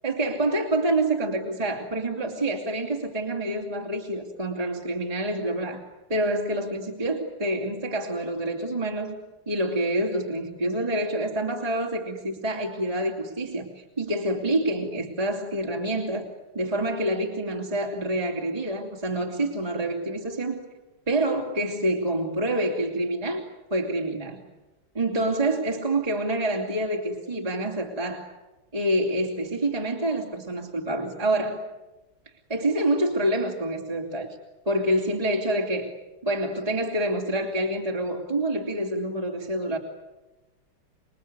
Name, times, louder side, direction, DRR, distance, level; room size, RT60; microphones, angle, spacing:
voice 1, 0.0-5.8 6.1-9.2 9.5-16.3 16.5-20.6 21.1-23.4 23.7-24.4 24.9-28.3 28.7-31.6 32.5-34.4 34.6-35.9 36.2-39.8, right 1 dB, 15° right, -1 dB, 2.9 m, -27 dB
27.5 x 22.5 x 9.7 m, 1.1 s
omnidirectional pair, 2.4 m